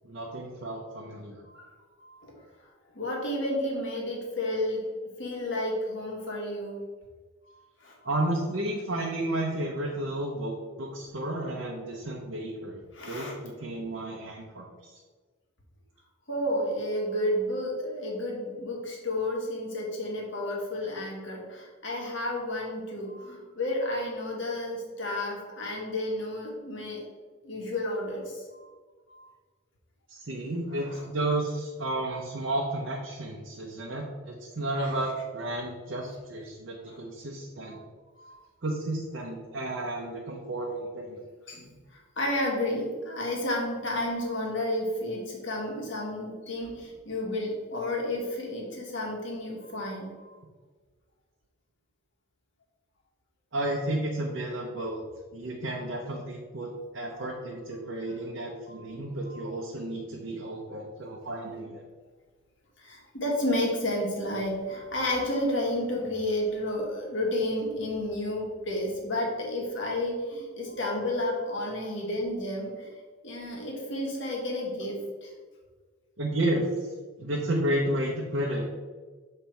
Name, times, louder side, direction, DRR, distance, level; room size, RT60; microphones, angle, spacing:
voice 1, 0.0-1.4 8.0-12.8 13.1-14.9 30.1-37.8 38.6-41.2 53.5-55.0 55.3-61.8 76.2-76.7 77.2-78.6, right 1 dB, 60° right, -2 dB, 0.8 m, -32 dB
voice 2, 2.0-2.3 2.9-4.8 5.2-6.8 7.8-8.0 12.9-13.3 16.3-27.0 27.4-28.4 29.1-29.3 30.8-31.0 34.7-35.0 36.9-37.0 38.2-38.4 41.5-50.1 62.8-72.9 73.2-75.3, left 1 dB, 60° left, -2 dB, 1.6 m, -31 dB
7.0 x 3.3 x 4.4 m, 1.4 s
head